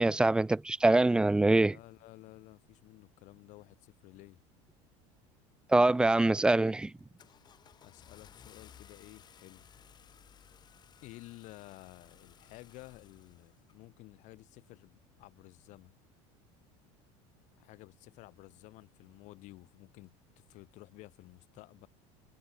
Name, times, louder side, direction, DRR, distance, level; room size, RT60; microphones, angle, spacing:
voice 1, 0.0-1.8 5.7-6.9, right 2 dB, 5° right, 0.4 m, -24 dB
voice 2, 1.6-4.4 7.8-9.7 11.0-15.9 17.6-20.1 20.5-21.9, left 20 dB, 55° left, 6.5 m, -53 dB
Car / Engine starting, 6.1-6.4 6.8-13.8, left 8 dB, 30° left, 3.6 m, -58 dB
cardioid pair, 145°, 15 cm